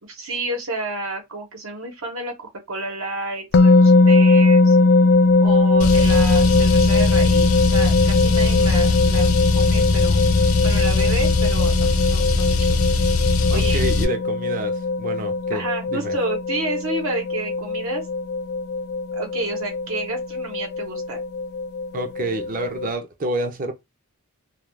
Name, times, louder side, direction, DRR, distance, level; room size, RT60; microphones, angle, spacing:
voice 1, 0.0-4.8 5.4-10.2 10.6-12.8 13.5-13.8 15.5-18.0 19.1-21.2, right 2 dB, 75° right, 0.9 m, -30 dB
sound 1, 3.5-22.9, left 3 dB, 50° left, 0.3 m, -20 dB
Car, 5.8-14.0, left 3 dB, 85° left, 0.7 m, -20 dB
voice 2, 13.5-16.2 21.9-23.7, right 2 dB, 40° right, 0.6 m, -29 dB
2.3 x 2.3 x 3.2 m
head